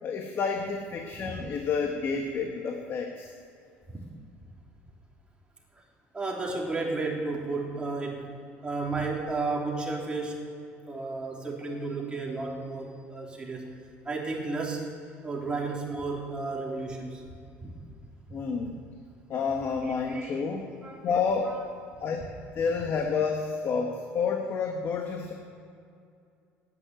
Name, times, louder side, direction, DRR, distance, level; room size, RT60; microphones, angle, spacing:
voice 1, 0.0-3.3 18.3-18.7 19.3-20.7 21.0-21.6 22.0-22.2 22.5-25.3, left 5 dB, 50° left, 3 dB, 1.4 m, -29 dB
voice 2, 6.1-8.3 8.6-10.5 10.9-13.7 14.0-14.8 15.2-17.2 17.6-17.7 19.8-20.4 20.8-21.6, right 3 dB, 20° right, -2 dB, 3.3 m, -33 dB
10.0 x 9.9 x 9.1 m, 2.4 s
supercardioid pair, 95°, 5 cm